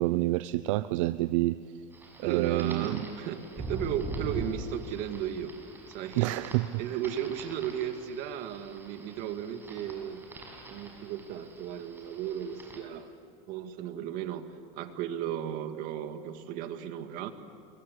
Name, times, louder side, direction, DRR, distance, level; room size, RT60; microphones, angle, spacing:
voice 1, 0.0-1.6 2.2-3.0 6.2-6.7, right 17 dB, 80° right, 14 dB, 0.6 m, -28 dB
sound 1, 1.9-12.8, right 2 dB, 15° right, 6.2 m, -43 dB
voice 2, 2.2-5.5 5.9-6.3 6.8-10.2 10.7-13.1 13.5-14.5 14.8-17.3, right 10 dB, 60° right, 8 dB, 2.1 m, -35 dB
28.5 x 23.0 x 8.1 m, 2.5 s
supercardioid pair, 130°, 16 cm